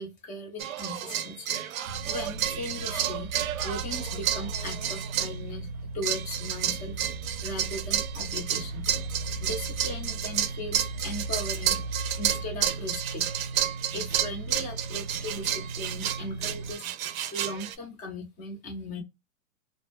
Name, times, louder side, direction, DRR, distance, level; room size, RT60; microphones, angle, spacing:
voice 1, 0.0-1.5 2.1-3.3 3.6-5.7 5.9-7.0 7.4-8.9 9.4-11.8 12.2-13.3 13.9-16.9 17.3-19.0, left 1 dB, 20° left, 2 dB, 0.7 m, -38 dB
sound 1, 0.6-5.4 6.0-17.8, right 10 dB, 80° right, 0.5 m, -31 dB
sound 2, 1.9-16.7, right 3 dB, 40° right, 0.6 m, -37 dB
2.2 x 2.0 x 3.2 m, 0.21 s
hypercardioid pair, 140°, 40 cm